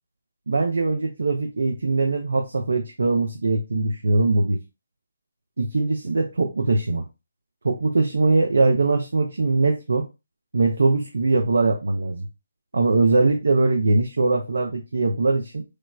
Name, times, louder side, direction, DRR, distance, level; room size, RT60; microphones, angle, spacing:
voice 1, 0.5-4.6 5.6-7.1 7.6-10.1 10.5-12.3 12.7-15.6, right 3 dB, 65° right, 3 dB, 0.4 m, -21 dB
3.1 x 2.0 x 2.3 m, 0.27 s
figure-of-eight pair, 145°, 0 cm